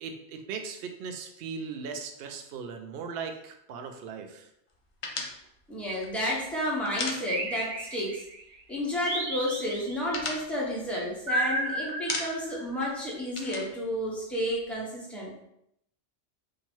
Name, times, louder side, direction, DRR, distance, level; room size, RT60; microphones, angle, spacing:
voice 1, 0.0-4.5, right 5 dB, 65° right, 5 dB, 0.7 m, -38 dB
sound 1, 5.0-7.8 8.1-8.2 8.5-9.2 9.6-11.6 11.9-12.6 12.9-14.7, left 3 dB, 55° left, 0.3 m, -37 dB
voice 2, 5.7-8.2 8.7-15.3, equal, ahead, -6 dB, 1.0 m, -31 dB
sound 2, 7.3-8.4 9.1-10.2 11.3-12.7, right 1 dB, 90° right, 1.1 m, -32 dB
2.9 x 2.7 x 4.4 m, 0.77 s
omnidirectional pair, 1.2 m